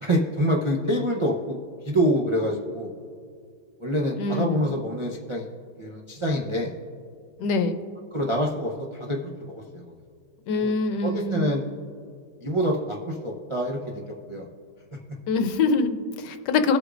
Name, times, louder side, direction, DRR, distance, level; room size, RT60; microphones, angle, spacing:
voice 1, 0.0-1.6 1.8-2.9 3.8-5.5 5.8-6.7 8.1-9.9 10.5-10.7 11.0-11.6 12.4-14.0 14.3-14.5, equal, 50° right, -1 dB, 0.3 m, -26 dB
voice 2, 4.2-4.7 7.4-7.8 10.5-11.6 15.3-16.8, left 4 dB, 75° left, 8 dB, 1.3 m, -24 dB
21.0 x 8.1 x 2.5 m, 2.2 s
omnidirectional pair, 1.9 m